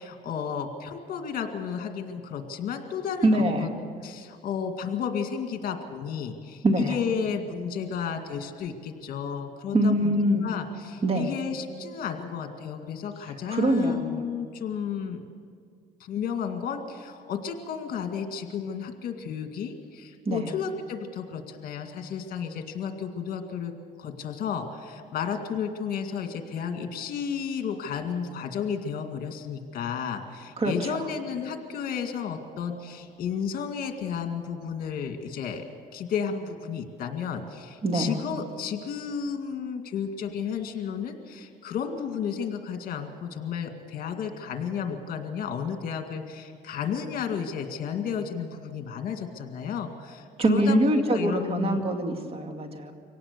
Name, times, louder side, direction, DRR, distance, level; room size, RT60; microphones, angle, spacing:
voice 1, 0.0-3.7 4.0-10.1 10.4-15.2 16.0-23.7 24.0-35.7 35.9-51.8, left 7 dB, 60° left, 5 dB, 2.0 m, -32 dB
voice 2, 3.2-3.7 6.6-7.0 9.7-10.5 11.0-11.3 13.5-14.2 20.3-20.5 30.6-31.1 37.8-38.1 50.4-52.9, right 1 dB, 35° right, 5 dB, 2.2 m, -24 dB
24.5 x 18.0 x 6.7 m, 2.1 s
cardioid pair, 110°, 17 cm